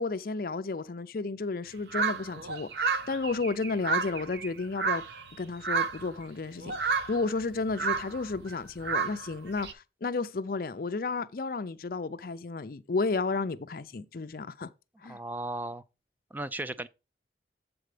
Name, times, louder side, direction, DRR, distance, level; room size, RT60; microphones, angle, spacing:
voice 1, 0.0-5.0 5.3-14.7 15.0-15.2, left 3 dB, 50° left, 0.5 m, -32 dB
sound 1, 1.9-5.4 5.6-6.2 6.6-9.7, right 5 dB, 65° right, 0.6 m, -31 dB
voice 2, 15.1-15.8 16.3-16.9, right 2 dB, 10° right, 0.3 m, -35 dB
7.9 x 4.1 x 5.0 m
head